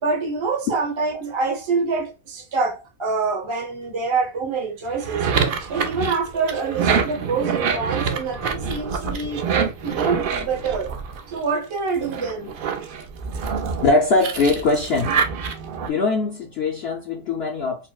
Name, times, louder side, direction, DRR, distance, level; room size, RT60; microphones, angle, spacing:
voice 1, 0.0-5.3 5.7-10.9 11.3-12.5, right 4 dB, 25° right, 0.7 m, -26 dB
sound 1, 4.9-11.5 12.0-15.9, right 6 dB, 70° right, 0.5 m, -26 dB
voice 2, 13.8-15.2 15.9-17.9, left 3 dB, 65° left, 0.7 m, -21 dB
4.3 x 2.0 x 2.3 m
omnidirectional pair, 1.5 m